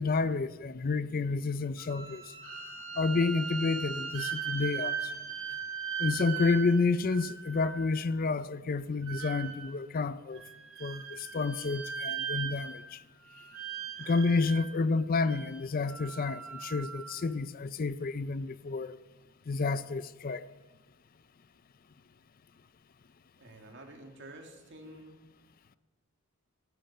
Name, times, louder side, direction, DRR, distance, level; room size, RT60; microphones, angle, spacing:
voice 1, 0.0-2.2 3.0-5.0 6.0-10.4 10.8-13.0 14.1-19.0 19.5-20.4, left 4 dB, 40° left, 0.4 m, -30 dB
sound 1, 1.8-8.0 9.0-9.9 10.3-13.0 13.2-14.7 15.2-17.3, right 7 dB, 75° right, 2.5 m, -39 dB
voice 2, 23.4-25.3, right 1 dB, 55° right, 2.2 m, -49 dB
14.5 x 13.0 x 5.6 m
head